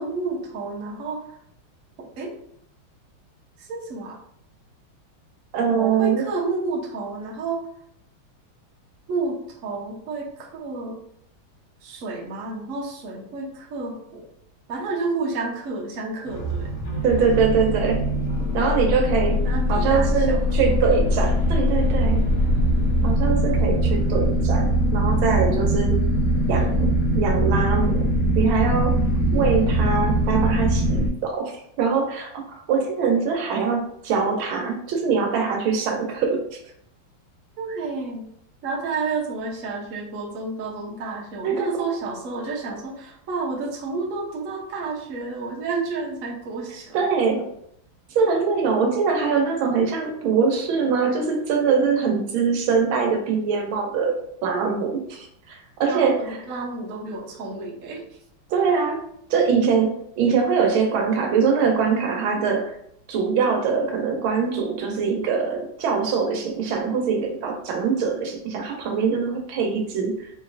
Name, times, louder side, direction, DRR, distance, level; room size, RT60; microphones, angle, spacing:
voice 1, 0.0-1.4 2.0-2.4 3.6-4.2 5.7-7.6 9.1-11.0 11.8-14.3 14.7-16.7 19.4-20.4 37.6-38.3 38.6-47.0 48.3-48.4 55.9-58.2, right 3 dB, 55° right, -2 dB, 1.0 m, -30 dB
voice 2, 5.5-6.3 17.0-18.0 18.5-19.4 19.7-22.2 23.0-26.0 26.5-28.9 29.3-36.6 41.4-41.7 46.9-47.5 48.1-56.4 58.5-59.0 59.3-62.8 63.1-70.3, right 5 dB, 80° right, 3 dB, 1.5 m, -23 dB
sound 1, 16.3-31.1, equal, 80° left, 1.8 m, -22 dB
4.4 x 3.0 x 2.6 m, 0.70 s
omnidirectional pair, 2.2 m